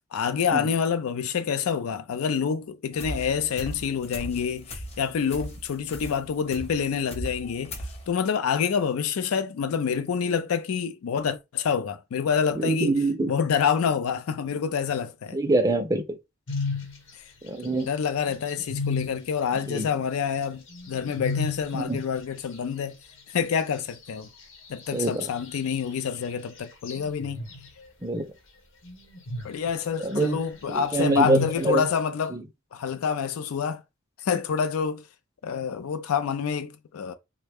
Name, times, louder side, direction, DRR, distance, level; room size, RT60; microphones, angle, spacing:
voice 1, 0.1-7.7 8.1-12.9 13.3-15.4 17.1-17.2 17.6-23.0 23.3-24.3 24.7-27.4 29.4-32.4 32.7-33.8 34.2-35.1 35.4-37.1, left 7 dB, 80° left, 0.4 m, -27 dB
sound 1, 2.9-8.1, equal, 30° left, 0.8 m, -38 dB
voice 2, 12.5-13.3 15.3-16.2 17.4-17.9 19.7-19.9 21.7-22.0 24.9-25.3 28.0-28.3 30.0-31.9 32.3-32.4, right 2 dB, 15° right, 0.5 m, -25 dB
sound 2, 16.5-17.0 17.6-17.7 18.3-19.2 20.7-21.7 25.2-25.7 26.8-27.7 28.8-29.7 30.7-31.7, left 3 dB, 60° left, 1.0 m, -32 dB
3.1 x 2.2 x 3.4 m
head